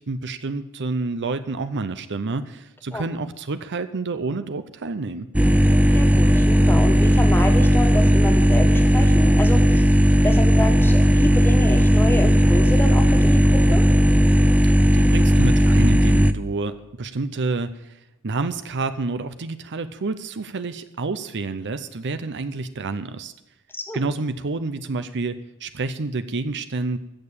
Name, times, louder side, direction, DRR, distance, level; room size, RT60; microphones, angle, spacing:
voice 1, 0.0-5.3 14.9-17.9 18.2-23.3 23.9-27.0, right 3 dB, 50° right, 11 dB, 0.7 m, -28 dB
sound 1, 5.3-16.3, equal, 5° right, 0.5 m, -16 dB
voice 2, 5.9-9.9 10.2-13.8 23.7-24.0, left 1 dB, 10° left, 4 dB, 1.6 m, -28 dB
15.0 x 6.8 x 8.8 m, 0.90 s
head